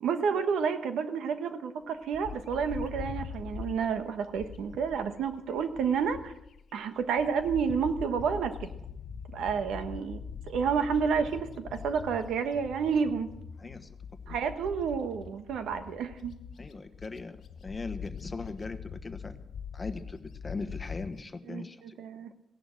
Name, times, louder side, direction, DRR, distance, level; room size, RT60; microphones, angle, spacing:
voice 1, 0.0-6.3 6.7-8.7 9.3-10.2 10.5-13.3 14.3-16.3 21.5-22.3, right 6 dB, 85° right, 9 dB, 1.3 m, -30 dB
Bird, 2.1-6.6 7.0-21.2, left 6 dB, 60° left, 0.9 m, -43 dB
voice 2, 13.6-13.9 14.3-14.4 16.6-19.4 19.7-21.8, left 3 dB, 25° left, 10 dB, 1.2 m, -40 dB
16.5 x 11.0 x 6.5 m, 0.82 s
cardioid pair, 115°, 0 cm